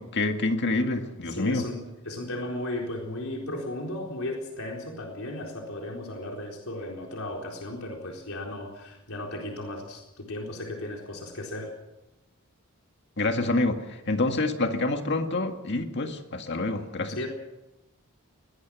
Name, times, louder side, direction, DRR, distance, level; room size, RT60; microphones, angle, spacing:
voice 1, 0.0-1.7 13.2-17.2, left 2 dB, 50° left, 5 dB, 2.0 m, -27 dB
voice 2, 1.3-11.7 17.1-17.3, left 1 dB, 75° left, 0 dB, 4.1 m, -35 dB
22.0 x 19.5 x 6.3 m, 0.96 s
head